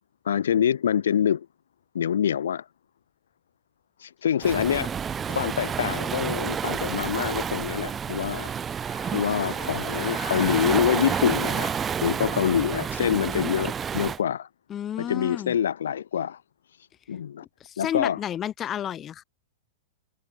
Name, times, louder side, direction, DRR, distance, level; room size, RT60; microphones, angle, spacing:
voice 1, 0.2-1.5 1.9-2.6 4.0-5.0 5.3-8.5 9.1-11.7 12.0-14.5 15.0-16.4 17.1-17.5 17.8-18.2, left 9 dB, 90° left, 0.7 m, -25 dB
Waves surf, 4.4-14.2, right 7 dB, 20° right, 1.7 m, -29 dB
Wind instrument woodwind instrument, 8.8-13.3, left 11 dB, 75° left, 5.7 m, -44 dB
voice 2, 14.7-15.6 17.6-19.2, left 10 dB, 25° left, 1.1 m, -31 dB
hypercardioid pair, 140°, 0 cm